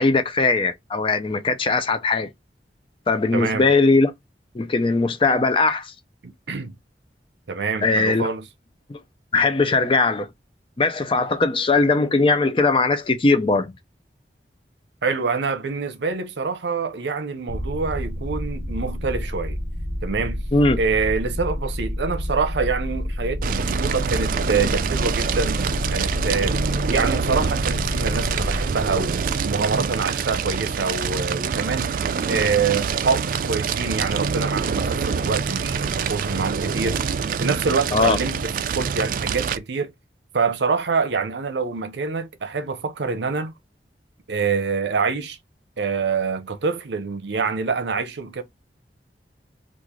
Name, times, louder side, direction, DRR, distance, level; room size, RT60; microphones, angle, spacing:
voice 1, 0.0-2.3 3.1-4.1 4.5-5.9 7.8-8.3 8.9-9.0 9.3-10.3 10.8-13.7 20.5-20.8 37.9-38.2, left 3 dB, 30° left, 0.4 m, -19 dB
voice 2, 3.3-3.7 6.2-6.7 7.5-8.5 15.0-19.6 20.0-20.4 20.8-26.6 26.9-31.9 32.3-37.0 37.4-39.9 40.3-43.5 44.3-45.4 45.8-48.4, right 5 dB, 80° right, 0.6 m, -26 dB
sound 1, 17.5-30.8, equal, 10° right, 0.8 m, -29 dB
Fire, 23.4-39.6, right 6 dB, 50° right, 0.3 m, -26 dB
3.0 x 2.5 x 3.6 m
head